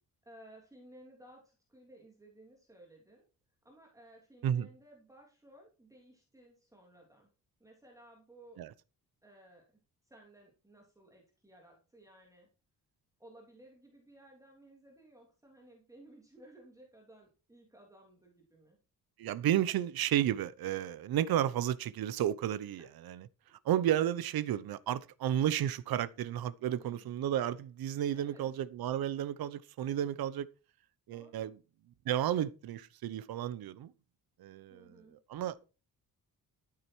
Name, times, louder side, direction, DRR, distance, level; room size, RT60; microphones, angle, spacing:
voice 1, 0.2-3.3 3.6-7.3 7.6-8.7 9.2-9.8 10.0-12.5 13.2-18.8 22.8-22.9 26.6-27.1 28.1-28.5 31.1-31.5 34.7-35.2, right 1 dB, 10° right, 3.0 m, -58 dB
voice 2, 19.2-23.2 23.6-30.5 31.1-31.6 32.0-33.9 34.4-34.9 35.3-35.6, right 11 dB, 80° right, 1.0 m, -32 dB
13.5 x 8.7 x 4.6 m
wide cardioid pair, 170°, 36 cm